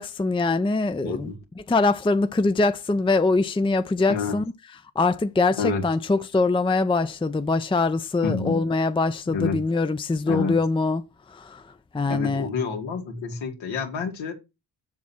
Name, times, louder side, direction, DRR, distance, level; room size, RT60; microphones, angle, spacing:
voice 1, 0.0-1.3 1.7-4.4 5.0-11.0 11.3-11.6 11.9-12.5, left 3 dB, 10° left, 0.6 m, -23 dB
voice 2, 1.0-1.4 4.1-4.4 5.6-5.9 8.2-8.7 9.3-9.6 10.3-10.6 12.1-14.3, left 5 dB, 90° left, 2.3 m, -28 dB
7.4 x 5.8 x 4.3 m
supercardioid pair, 55°, 45 cm